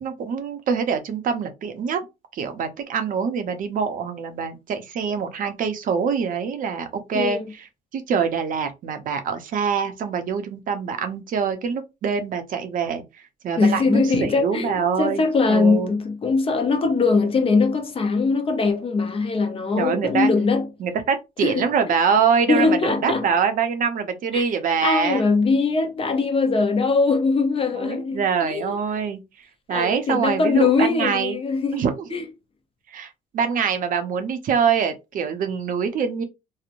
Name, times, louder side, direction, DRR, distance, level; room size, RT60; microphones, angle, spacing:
voice 1, 0.0-2.0 2.3-7.4 7.9-13.0 13.4-15.2 15.5-15.9 19.8-20.3 20.8-25.2 27.7-29.2 29.7-31.4 31.7-32.0 32.9-36.2, right 6 dB, 55° right, 0.6 m, -24 dB
voice 2, 7.1-7.4 13.6-20.7 21.4-21.7 22.5-23.3 24.3-24.4 24.8-28.7 29.7-31.8 32.1-32.2, left 4 dB, 35° left, 0.6 m, -21 dB
2.9 x 2.0 x 2.4 m
cardioid pair, 110°, 17 cm